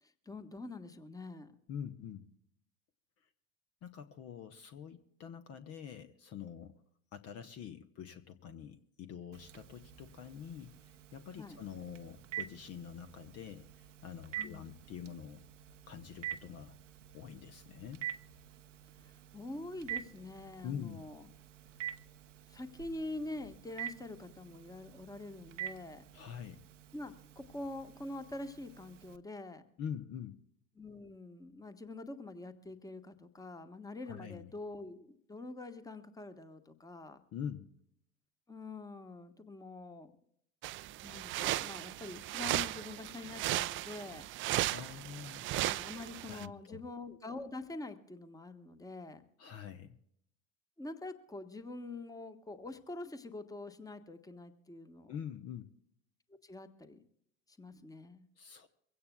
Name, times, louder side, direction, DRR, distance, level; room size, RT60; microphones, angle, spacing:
voice 1, 0.0-1.5 11.4-11.6 14.4-14.7 19.0-21.2 22.5-26.0 26.9-29.6 30.8-37.2 38.5-40.1 41.0-44.3 45.6-49.2 50.8-55.1 56.4-57.0 57.5-58.3, left 2 dB, 10° left, 9 dB, 1.3 m, -45 dB
voice 2, 1.7-2.2 3.8-6.8 7.1-15.4 15.9-16.7 17.1-18.0 20.6-21.0 26.1-26.6 29.8-30.4 34.1-34.5 37.3-37.7 44.7-45.5 46.3-46.8 49.4-50.0 55.1-55.7 58.4-58.7, left 8 dB, 40° left, 9 dB, 0.9 m, -45 dB
Telephone, 9.3-29.2, right 11 dB, 80° right, 0.8 m, -47 dB
sound 1, 40.6-46.5, right 16 dB, 35° right, 0.5 m, -36 dB
23.5 x 16.5 x 2.3 m, 0.71 s
figure-of-eight pair, 70°, 36 cm